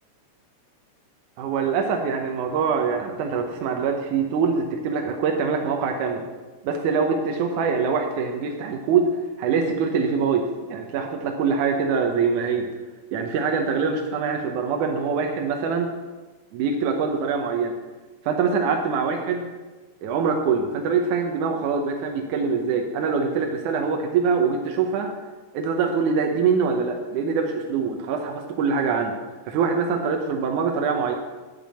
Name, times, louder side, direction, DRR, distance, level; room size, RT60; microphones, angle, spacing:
voice 1, 1.4-6.3 6.6-12.7 13.1-15.9 16.5-17.7 18.3-19.5 20.0-25.1 25.5-29.1 29.5-31.1, right 5 dB, 80° right, 3 dB, 2.4 m, -24 dB
9.0 x 8.8 x 7.5 m, 1.3 s
omnidirectional pair, 3.5 m